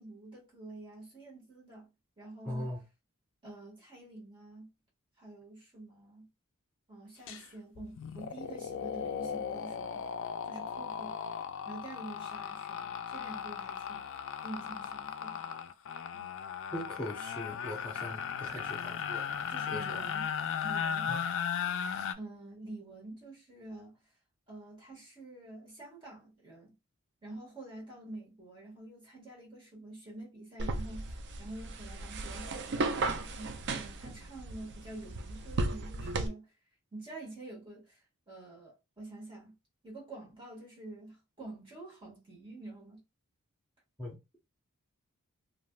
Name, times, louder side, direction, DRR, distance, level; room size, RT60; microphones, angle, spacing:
voice 1, 0.0-1.9 2.2-2.7 3.4-4.7 5.2-6.3 6.9-11.2 11.6-14.1 14.4-15.5 16.1-16.3 19.5-20.3 20.6-21.1 22.2-23.9 24.5-26.7 27.2-36.5 36.9-38.0 38.3-39.5 39.8-43.0, right 2 dB, 25° right, 1.6 m, -47 dB
voice 2, 2.4-2.8 16.7-19.3 19.7-20.1 21.1-21.2 44.0-44.2, equal, 10° left, 0.8 m, -40 dB
sound 1, 7.3-7.4 7.8-22.1, left 7 dB, 60° left, 0.3 m, -37 dB
sound 2, 30.6-36.3, right 3 dB, 55° right, 0.4 m, -35 dB
3.2 x 2.6 x 2.3 m
head